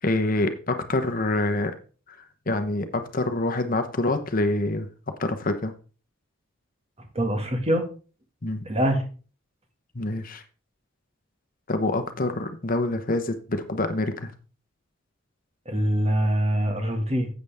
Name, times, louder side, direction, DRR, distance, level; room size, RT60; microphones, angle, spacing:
voice 1, 0.0-1.8 2.1-4.9 5.2-5.7 8.4-8.7 9.9-10.4 11.7-14.3, left 2 dB, 40° left, 8 dB, 1.0 m, -26 dB
voice 2, 7.2-7.9 8.7-9.0 15.7-17.3, equal, 30° right, 5 dB, 1.9 m, -24 dB
11.0 x 8.1 x 3.5 m, 0.37 s
head